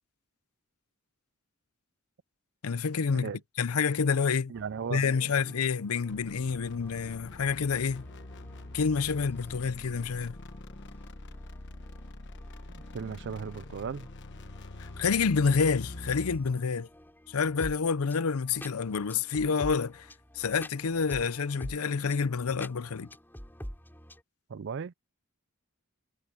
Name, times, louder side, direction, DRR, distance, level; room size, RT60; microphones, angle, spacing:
voice 1, 2.6-3.3 3.6-4.5 4.9-8.0 8.7-10.4 15.0-16.9 17.3-20.1 20.4-23.1, left 5 dB, 80° left, 0.6 m, -28 dB
sound 1, 4.5-24.2, equal, 10° left, 7.4 m, -49 dB
voice 2, 4.5-5.1 12.7-14.1 24.5-24.9, right 6 dB, 55° right, 0.4 m, -36 dB
sound 2, 6.1-16.5, left 2 dB, 55° left, 1.2 m, -45 dB
head